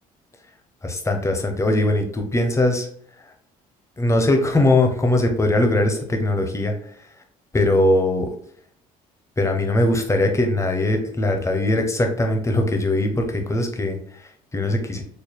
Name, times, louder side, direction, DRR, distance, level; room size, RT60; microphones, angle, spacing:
voice 1, 0.8-2.9 4.0-6.7 7.5-8.3 9.4-15.0, left 1 dB, 15° left, 4 dB, 1.0 m, -21 dB
4.5 x 3.2 x 2.3 m, 0.63 s
supercardioid pair, 85°, 17 cm